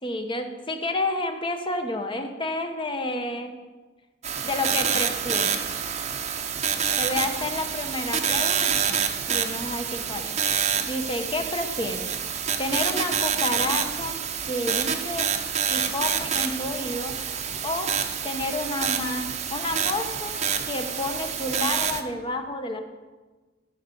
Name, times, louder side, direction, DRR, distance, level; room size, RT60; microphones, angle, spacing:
voice 1, 0.0-3.5 4.4-5.7 7.0-9.0 9.3-10.4 10.9-12.1 12.6-14.2 14.5-15.3 15.7-17.2 17.6-17.9 18.2-22.8, left 2 dB, 25° left, 6 dB, 1.0 m, -30 dB
sound 1, 4.2-22.0, right 7 dB, 35° right, 0.8 m, -27 dB
13.5 x 5.9 x 6.9 m, 1.3 s
head